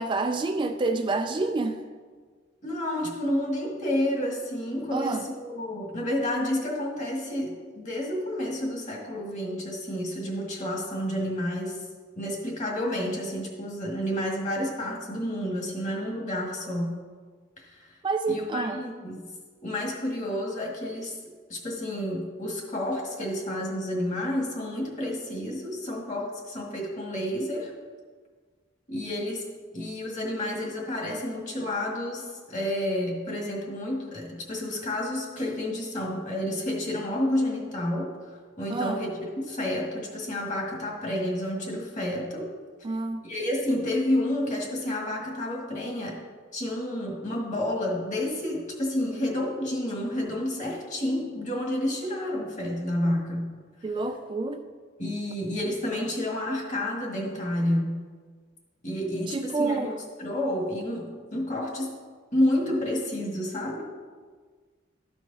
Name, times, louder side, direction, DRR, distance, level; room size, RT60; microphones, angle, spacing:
voice 1, 0.0-1.9 4.9-5.3 18.0-18.8 38.7-39.0 42.8-43.2 53.8-54.6 59.3-59.9, right 3 dB, 25° right, 6 dB, 0.3 m, -28 dB
voice 2, 2.6-11.8 12.2-17.0 17.7-17.9 18.3-19.3 19.6-21.2 21.5-27.7 28.9-42.5 43.2-46.2 46.5-53.6 55.0-58.0 58.8-59.9 60.2-61.9 62.3-63.8, left 1 dB, 40° left, -1 dB, 1.8 m, -30 dB
13.0 x 4.6 x 4.1 m, 1.5 s
head